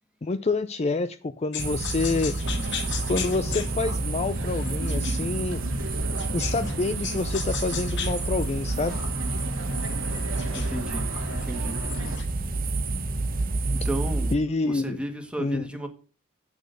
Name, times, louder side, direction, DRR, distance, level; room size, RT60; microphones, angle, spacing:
voice 1, 0.2-2.3 3.1-5.7 6.3-9.0 14.3-15.0 15.4-15.7, left 3 dB, 30° left, 0.5 m, -27 dB
sound 1, 1.5-6.8 7.0-12.3, left 9 dB, 60° left, 1.2 m, -38 dB
sound 2, 1.6-14.4, right 2 dB, 45° right, 1.1 m, -29 dB
sound 3, 2.4-12.2, right 2 dB, 70° right, 1.8 m, -38 dB
voice 2, 10.5-11.8 13.7-14.4 14.6-15.9, right 1 dB, 5° right, 1.6 m, -33 dB
8.5 x 6.6 x 6.5 m
head